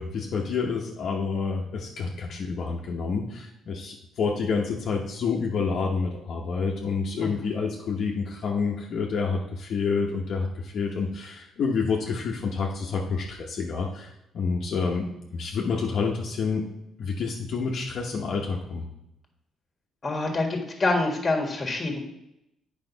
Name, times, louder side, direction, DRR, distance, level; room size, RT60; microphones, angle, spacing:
voice 1, 0.0-14.1 14.3-16.7 17.0-18.9, left 5 dB, 55° left, -1 dB, 1.0 m, -28 dB
voice 2, 20.0-22.0, left 2 dB, 25° left, 2 dB, 1.6 m, -26 dB
8.8 x 5.3 x 4.0 m, 0.83 s
cardioid pair, 140°, 0 cm